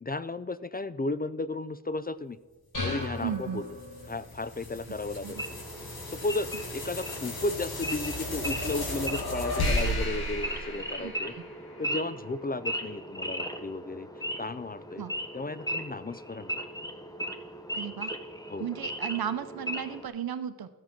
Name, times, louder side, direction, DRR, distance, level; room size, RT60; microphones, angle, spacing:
voice 1, 0.0-2.4 2.8-3.6 4.1-5.6 6.1-11.3 11.8-14.1 14.4-15.0 15.3-16.7 18.5-18.7, left 2 dB, 25° left, 14 dB, 0.4 m, -34 dB
sound 1, 2.7-4.4, left 2 dB, 60° left, 4.1 m, -36 dB
sound 2, 3.2-11.8, left 1 dB, 85° left, 2.0 m, -34 dB
voice 2, 3.2-3.6 5.2-5.4 11.0-11.4 15.0-15.1 17.7-18.2 18.6-20.7, right 9 dB, 75° right, 12 dB, 0.7 m, -35 dB
Wild animals / Idling, 5.3-20.1, right 1 dB, 10° left, 1.0 m, -37 dB
13.0 x 7.1 x 5.9 m, 1.3 s
wide cardioid pair, 65°, 37 cm